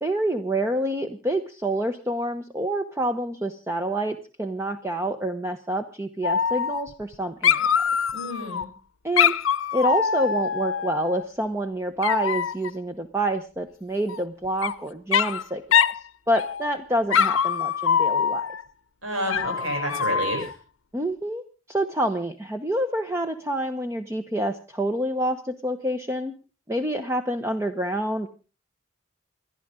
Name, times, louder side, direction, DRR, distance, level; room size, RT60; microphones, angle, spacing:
voice 1, 0.0-7.8 9.0-9.3 9.7-18.5 20.9-26.4 26.7-28.3, right 1 dB, 15° right, 7 dB, 0.8 m, -27 dB
Dog, 6.2-7.1 7.4-8.6 9.2-11.2 12.0-12.7 14.1-14.7 15.1-15.4 15.7-16.0 16.3-16.8 17.1-18.6 19.3-20.5, left 7 dB, 80° left, 0.7 m, -24 dB
voice 2, 8.1-8.7 19.0-20.5, equal, 85° right, 1 dB, 7.0 m, -29 dB
29.0 x 11.0 x 3.7 m, 0.36 s
head